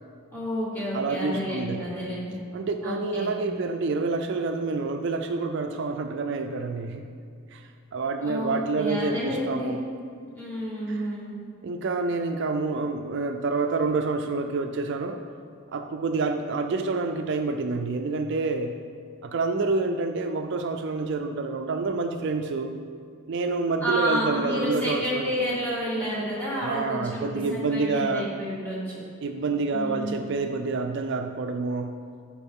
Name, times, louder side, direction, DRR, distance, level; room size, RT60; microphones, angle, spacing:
voice 1, 0.3-2.4 2.8-3.3 8.2-9.7 10.2-11.3 23.8-28.9 29.7-30.4, equal, 10° left, -8 dB, 2.1 m, -30 dB
voice 2, 0.9-1.8 2.5-7.1 7.5-9.8 10.9-11.1 11.6-15.2 15.7-18.8 19.2-22.7 23.3-25.3 26.6-28.3 29.2-32.0, right 3 dB, 55° right, 6 dB, 0.4 m, -28 dB
12.5 x 4.6 x 3.6 m, 2.3 s
head